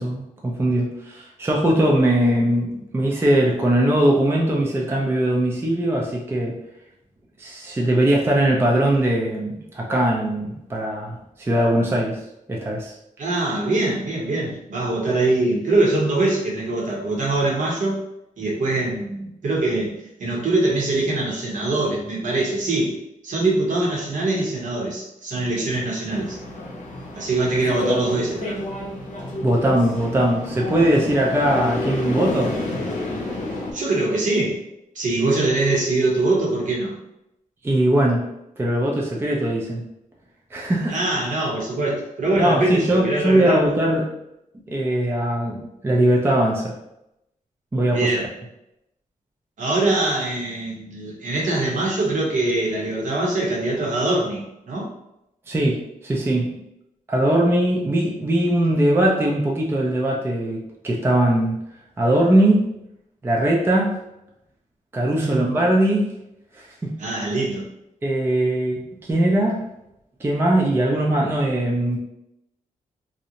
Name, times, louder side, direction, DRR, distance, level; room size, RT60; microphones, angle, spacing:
voice 1, 0.0-6.6 7.4-12.2 12.5-12.9 29.4-32.5 35.4-35.5 37.6-38.3 38.6-39.8 40.5-41.0 42.4-44.1 44.7-46.7 47.7-48.1 55.5-56.5 57.1-61.6 62.0-62.6 63.2-64.0 64.9-66.1 66.5-67.0 68.0-69.6 70.2-72.0, right 1 dB, 15° right, -2 dB, 0.4 m, -20 dB
voice 2, 13.2-18.0 18.4-23.0 23.2-26.4 27.2-28.7 33.7-34.6 34.9-37.0 40.9-43.7 47.9-48.3 49.6-54.9 65.1-65.5 67.0-67.7, right 2 dB, 65° right, -3 dB, 0.9 m, -23 dB
sound 1, 26.1-33.7, left 2 dB, 65° left, 0.7 m, -29 dB
2.5 x 2.0 x 2.8 m, 0.84 s
wide cardioid pair, 110°, 14 cm